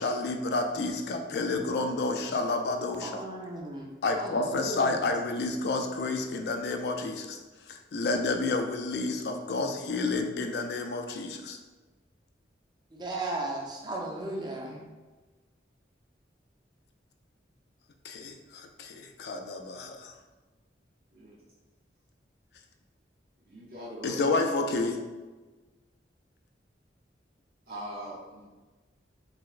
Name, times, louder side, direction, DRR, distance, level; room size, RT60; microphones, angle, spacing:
voice 1, 0.0-3.2 4.0-7.4 7.7-11.6 18.0-20.1 24.0-25.0, left 3 dB, 65° left, 5 dB, 0.3 m, -30 dB
voice 2, 3.0-3.9 4.2-4.9 13.0-14.8, right 2 dB, 25° right, -1 dB, 0.4 m, -35 dB
voice 3, 23.4-24.7 27.7-28.4, right 1 dB, 55° right, -6 dB, 0.7 m, -42 dB
4.1 x 2.1 x 2.4 m, 1.3 s
head